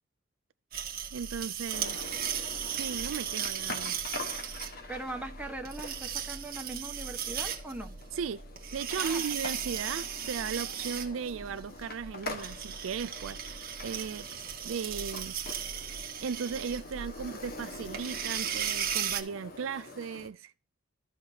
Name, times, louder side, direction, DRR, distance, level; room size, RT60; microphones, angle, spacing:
sound 1, 0.7-19.2, right 8 dB, 50° right, 1.5 m, -36 dB
voice 1, 1.1-2.0 2.7-4.0 8.1-8.4 8.7-14.3 14.6-15.3 16.2-20.5, right 6 dB, 75° right, 0.4 m, -36 dB
sound 2, 1.7-20.3, left 2 dB, 50° left, 1.5 m, -45 dB
voice 2, 4.9-7.9 9.0-9.2, right 2 dB, 5° right, 1.4 m, -40 dB
14.5 x 5.8 x 2.8 m
head